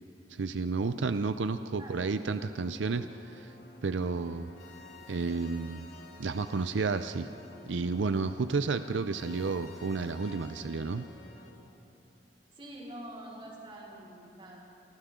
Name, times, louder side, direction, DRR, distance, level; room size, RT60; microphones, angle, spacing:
voice 1, 0.3-3.5 3.8-4.5 5.1-5.8 6.2-7.3 7.7-11.1, right 4 dB, 85° right, 10 dB, 0.5 m, -31 dB
sound 1, 2.4-11.5, left 2 dB, 65° left, 3.6 m, -51 dB
voice 2, 12.5-14.6, right 1 dB, 30° right, -5 dB, 4.6 m, -45 dB
28.5 x 24.5 x 3.8 m, 2.8 s
head